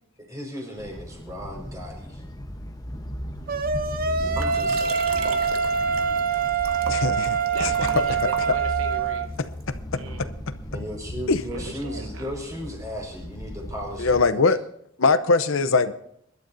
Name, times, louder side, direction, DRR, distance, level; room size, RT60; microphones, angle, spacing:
voice 1, 0.3-2.2 4.4-5.0 10.7-14.4, equal, 15° right, 0 dB, 5.0 m, -36 dB
sound 1, 0.8-14.3, left 1 dB, 20° left, 1.0 m, -36 dB
sound 2, 3.5-9.3, right 6 dB, 45° right, 0.8 m, -25 dB
Liquid, 4.4-9.0 9.6-9.7, right 5 dB, 85° right, 1.4 m, -37 dB
voice 2, 6.9-7.7 9.4-9.5 9.9-10.3 11.3-11.4 14.0-14.6 15.0-15.9, left 4 dB, 70° left, 11 dB, 0.8 m, -22 dB
voice 3, 7.5-9.3 10.0-10.3 11.5-12.2, right 3 dB, 70° right, 7 dB, 1.0 m, -36 dB
24.5 x 12.0 x 2.7 m, 0.72 s
head